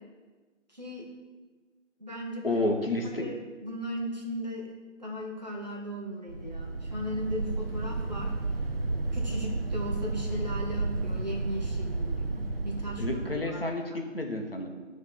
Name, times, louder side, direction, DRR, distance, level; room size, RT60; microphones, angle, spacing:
voice 1, 0.7-1.1 2.0-2.6 3.1-3.4 3.6-4.7 5.0-8.3 9.1-14.0, equal, 35° right, -2 dB, 1.0 m, -37 dB
voice 2, 2.4-3.3 13.0-14.7, left 2 dB, 50° left, 2 dB, 0.8 m, -30 dB
sound 1, 6.3-13.4, right 2 dB, 50° right, 0.6 m, -32 dB
9.1 x 3.2 x 5.3 m, 1.3 s
figure-of-eight pair, 165°, 38 cm